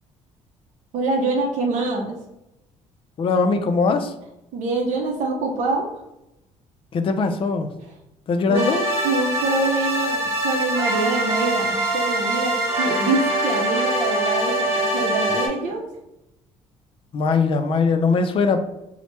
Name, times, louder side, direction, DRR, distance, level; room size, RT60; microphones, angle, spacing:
voice 1, 0.9-2.2 4.5-5.9 8.5-8.7 9.0-15.9, right 3 dB, 70° right, 0 dB, 0.6 m, -25 dB
voice 2, 3.2-4.1 6.9-7.7 8.3-8.8 17.1-18.6, left 4 dB, 45° left, 7 dB, 0.4 m, -20 dB
sound 1, 8.5-15.5, right 1 dB, 20° right, 1.0 m, -23 dB
3.1 x 2.1 x 2.9 m, 0.87 s
supercardioid pair, 85°, 13 cm